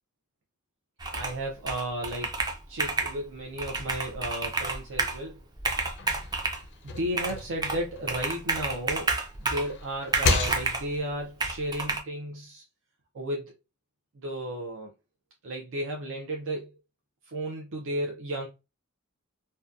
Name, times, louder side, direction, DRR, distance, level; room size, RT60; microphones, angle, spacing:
Computer keyboard, 1.0-1.4 1.7-3.2 3.6-5.2 5.6-6.6 7.2-7.8 8.1-9.7 10.1-10.9 11.4-12.0, right 3 dB, 20° right, 0.4 m, -30 dB
voice 1, 1.1-2.3 2.7-5.4 6.8-9.1 9.4-12.6 13.1-13.5 14.2-14.9 15.4-16.7 17.3-18.5, right 1 dB, 65° right, 0.5 m, -33 dB
sound 1, 5.7-8.9 9.3-11.1, left 4 dB, 60° left, 0.4 m, -32 dB
2.7 x 2.1 x 2.3 m
head